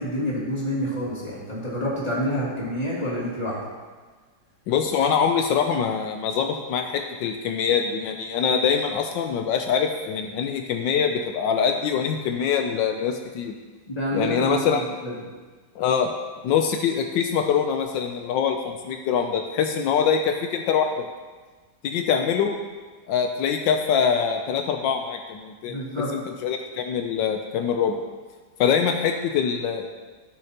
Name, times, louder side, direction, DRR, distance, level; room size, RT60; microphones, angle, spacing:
voice 1, 0.0-3.6 13.9-15.1 25.7-26.1, equal, 20° left, -7 dB, 2.7 m, -28 dB
voice 2, 4.7-13.5 14.1-14.8 15.8-16.1 16.4-21.1 21.8-22.6 23.1-25.8 26.1-28.0 28.6-29.9, left 7 dB, 85° left, 5 dB, 1.3 m, -24 dB
14.5 x 6.6 x 2.9 m, 1.4 s
omnidirectional pair, 2.0 m